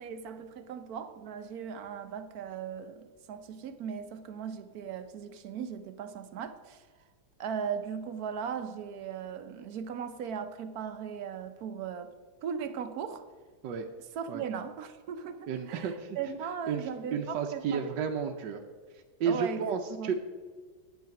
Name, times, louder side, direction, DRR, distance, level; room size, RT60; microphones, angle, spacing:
voice 1, 0.0-6.9 7.4-12.1 12.4-13.2 14.1-17.9 19.3-19.6 19.9-20.1, right 7 dB, 65° right, 10 dB, 1.2 m, -38 dB
voice 2, 15.5-16.2 16.7-16.8 17.1-18.6 18.9-20.2, right 6 dB, 80° right, 4 dB, 1.4 m, -32 dB
9.3 x 9.0 x 5.8 m, 1.5 s
omnidirectional pair, 1.9 m